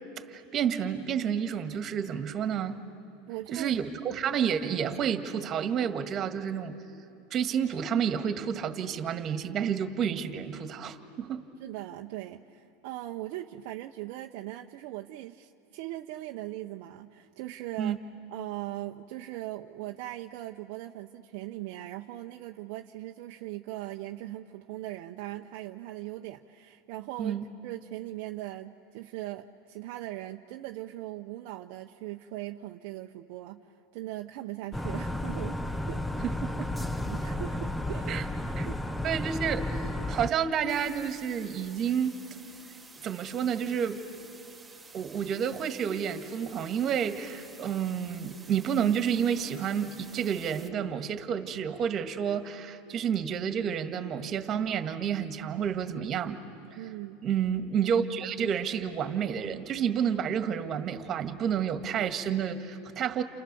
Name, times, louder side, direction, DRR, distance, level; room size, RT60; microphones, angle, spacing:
voice 1, 0.3-2.8 3.5-6.8 7.3-11.5 17.8-18.0 27.2-27.4 36.2-36.9 38.1-38.2 38.6-38.7 39.0-39.8 40.1-42.1 43.0-44.0 44.9-56.4 57.2-63.2, right 8 dB, 40° right, 8 dB, 1.9 m, -30 dB
voice 2, 3.3-3.8 11.6-18.0 18.3-35.6 35.9-36.3 37.0-38.2 38.7-38.8 56.7-57.2, right 15 dB, 65° right, 3 dB, 0.8 m, -40 dB
sound 1, 34.7-40.3, left 1 dB, 5° left, 0.9 m, -32 dB
sound 2, 40.7-50.7, right 4 dB, 10° right, 2.1 m, -51 dB
29.5 x 29.0 x 7.0 m, 2.7 s
hypercardioid pair, 95°, 0 cm